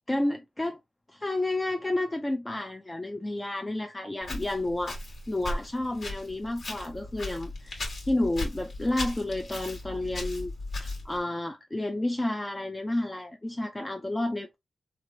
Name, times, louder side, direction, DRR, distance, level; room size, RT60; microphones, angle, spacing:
voice 1, 0.1-0.8 1.1-5.0 5.3-10.5 10.8-14.6, left 1 dB, 15° left, 0.3 m, -31 dB
Walk footsteps, 4.2-11.2, left 2 dB, 55° left, 1.5 m, -37 dB
3.3 x 2.4 x 2.5 m
wide cardioid pair, 95°, 0 cm